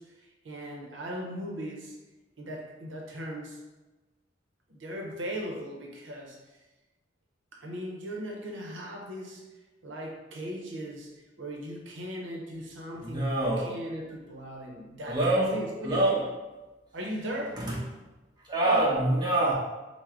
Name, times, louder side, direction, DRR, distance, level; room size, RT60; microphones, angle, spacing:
voice 1, 0.0-2.0 2.4-3.6 4.7-6.6 7.5-9.4 9.8-16.2 16.9-17.6, equal, 85° right, 0 dB, 0.7 m, -38 dB
voice 2, 13.0-13.7 15.1-15.5 15.8-16.2 17.6-17.8 18.5-19.5, right 1 dB, 25° right, -6 dB, 0.8 m, -25 dB
4.6 x 2.1 x 3.6 m, 1.1 s
head